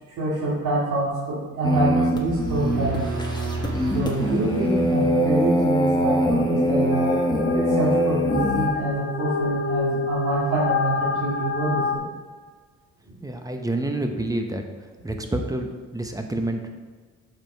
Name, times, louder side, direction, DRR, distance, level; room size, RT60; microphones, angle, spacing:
voice 1, 0.2-3.1 3.9-7.1 7.5-12.1 13.1-13.2, right 2 dB, 75° right, -6 dB, 2.4 m, -26 dB
sound 1, 1.6-8.7, equal, 15° left, 1.1 m, -23 dB
sound 2, 2.1-5.9, right 3 dB, 60° right, 2.1 m, -33 dB
sound 3, 6.9-12.0, left 5 dB, 35° left, 1.2 m, -28 dB
voice 2, 13.2-14.6 15.0-16.7, right 1 dB, 10° right, 5 dB, 0.9 m, -28 dB
7.5 x 5.3 x 4.5 m, 1.4 s
cardioid pair, 90°, 30 cm